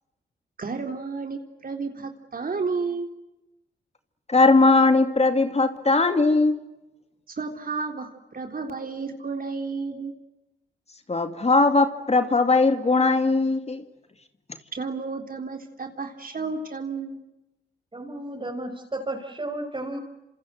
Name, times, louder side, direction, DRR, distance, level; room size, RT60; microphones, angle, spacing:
voice 1, 0.6-3.1 7.3-10.1 14.7-17.2, right 4 dB, 45° right, 4 dB, 3.8 m, -32 dB
voice 2, 4.3-6.6 11.1-13.8, left 3 dB, 35° left, 8 dB, 2.4 m, -19 dB
voice 3, 17.9-20.0, right 1 dB, 25° right, 0 dB, 5.7 m, -33 dB
27.5 x 27.0 x 7.8 m, 0.95 s
cardioid pair, 60°, 20 cm